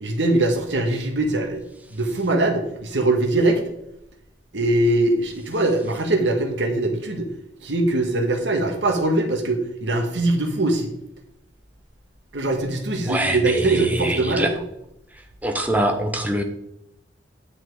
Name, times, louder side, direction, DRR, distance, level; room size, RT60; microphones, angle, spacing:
voice 1, 0.0-3.6 4.5-7.3 7.6-10.9 12.3-14.5, right 2 dB, 75° right, 4 dB, 1.7 m, -22 dB
voice 2, 13.1-14.5 15.4-16.4, right 1 dB, 10° right, 4 dB, 1.0 m, -24 dB
10.0 x 6.0 x 4.8 m, 0.81 s
head